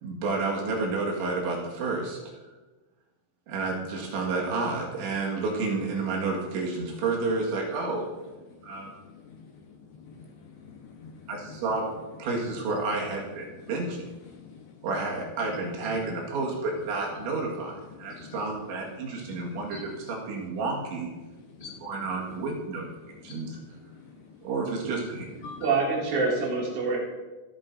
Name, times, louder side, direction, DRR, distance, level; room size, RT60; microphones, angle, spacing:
voice 1, 0.0-2.2 3.5-8.1 8.6-8.9 11.3-11.8 12.2-14.0 14.8-21.1 21.8-22.8 23.2-23.6 24.4-25.3, right 3 dB, 90° right, -2 dB, 4.2 m, -30 dB
voice 2, 7.7-8.1 8.4-12.4 12.7-13.0 13.4-15.1 15.4-16.5 16.8-16.9 17.2-20.6 21.2-22.6 23.0-25.8, left 5 dB, 75° left, -1 dB, 3.2 m, -47 dB
voice 3, 25.6-27.0, right 4 dB, 75° right, -4 dB, 4.8 m, -25 dB
26.5 x 8.9 x 2.7 m, 1.2 s
omnidirectional pair, 5.1 m